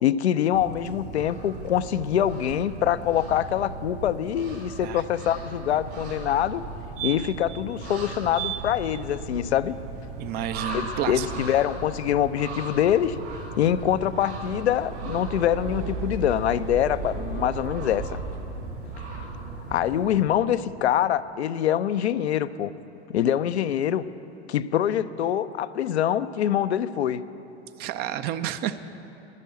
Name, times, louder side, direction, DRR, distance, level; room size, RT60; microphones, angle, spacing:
voice 1, 0.0-6.6 7.0-9.8 10.7-13.2 13.6-18.1 19.7-22.7 23.1-24.0 24.5-27.2, left 10 dB, 70° left, 13 dB, 0.5 m, -24 dB
sound 1, 0.5-20.2, right 2 dB, 75° right, 4.0 m, -38 dB
sound 2, 4.9-19.0, right 5 dB, 55° right, 1.2 m, -38 dB
voice 2, 10.2-11.4 27.8-28.9, right 11 dB, 30° right, 12 dB, 0.4 m, -30 dB
11.5 x 10.5 x 7.9 m, 3.0 s
figure-of-eight pair, 90°, 34 cm